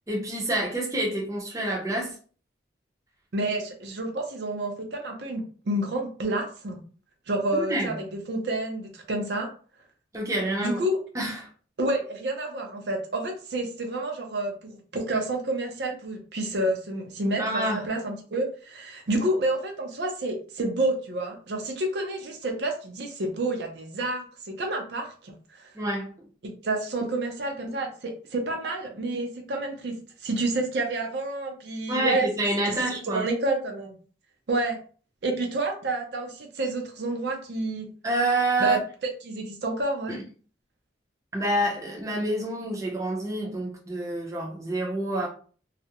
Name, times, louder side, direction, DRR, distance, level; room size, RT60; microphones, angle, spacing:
voice 1, 0.1-2.1 7.5-8.0 10.1-10.8 11.1-11.5 17.4-17.9 25.7-26.1 31.9-33.3 38.0-38.8 40.1-40.2 41.3-45.3, right 1 dB, 15° right, 0.6 m, -27 dB
voice 2, 3.3-6.8 7.3-9.5 10.6-11.0 11.8-25.7 26.4-29.9 30.2-32.3 32.7-32.8 33.1-33.9 34.5-34.8 35.2-37.9 38.6-38.8 39.2-40.2, right 2 dB, 65° right, 0.5 m, -29 dB
2.4 x 2.0 x 2.8 m
head